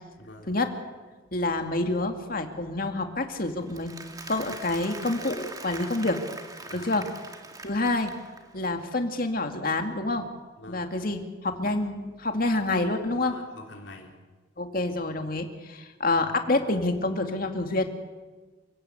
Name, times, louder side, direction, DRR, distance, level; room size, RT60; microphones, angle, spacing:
voice 1, 0.2-0.5 6.7-6.9 10.6-10.9 13.3-14.1 16.1-16.3, left 2 dB, 75° left, 1 dB, 3.5 m, -46 dB
voice 2, 1.3-3.9 4.3-6.2 6.7-7.1 7.6-8.1 8.5-10.3 10.7-13.4 14.6-17.9, left 2 dB, 50° left, 5 dB, 2.3 m, -27 dB
Applause, 3.6-8.6, right 3 dB, 20° right, 2.1 m, -42 dB
29.0 x 17.0 x 8.5 m, 1.3 s
head